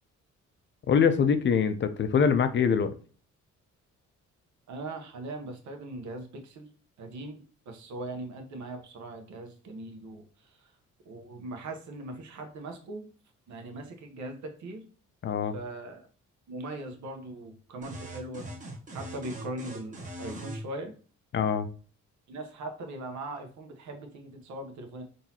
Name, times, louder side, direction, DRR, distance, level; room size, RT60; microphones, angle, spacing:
voice 1, 0.9-2.9 15.2-15.5 21.3-21.7, left 6 dB, 40° left, 10 dB, 0.4 m, -24 dB
voice 2, 4.7-6.7 7.0-7.4 7.7-10.2 11.1-13.1 13.5-14.8 15.5-16.1 16.5-18.5 18.9-20.9 22.3-25.0, right 2 dB, 70° right, 4 dB, 0.9 m, -40 dB
sound 1, 17.8-20.6, right 1 dB, 25° right, 1.1 m, -40 dB
3.9 x 2.7 x 2.8 m, 0.40 s
cardioid pair, 90°, 30 cm